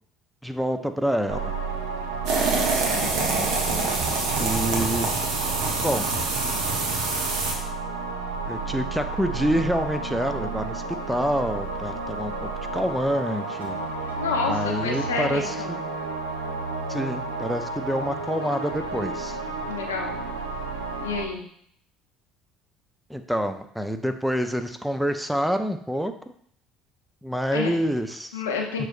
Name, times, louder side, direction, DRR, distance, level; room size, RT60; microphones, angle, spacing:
voice 1, 0.4-1.5 4.4-5.1 5.8-6.1 8.5-13.8 14.5-15.8 16.9-19.4 23.1-26.1 27.2-28.4 28.8-28.9, equal, ahead, 8 dB, 0.5 m, -27 dB
sound 1, 1.3-21.3, right 3 dB, 85° right, 0.5 m, -31 dB
sound 2, 2.3-7.5, right 3 dB, 60° right, 0.9 m, -26 dB
voice 2, 14.2-15.8 19.7-20.1 21.0-21.4 27.5-27.7 28.3-28.9, left 5 dB, 80° left, 2 dB, 0.6 m, -29 dB
6.0 x 3.2 x 2.5 m, 0.64 s
hypercardioid pair, 60°, 0 cm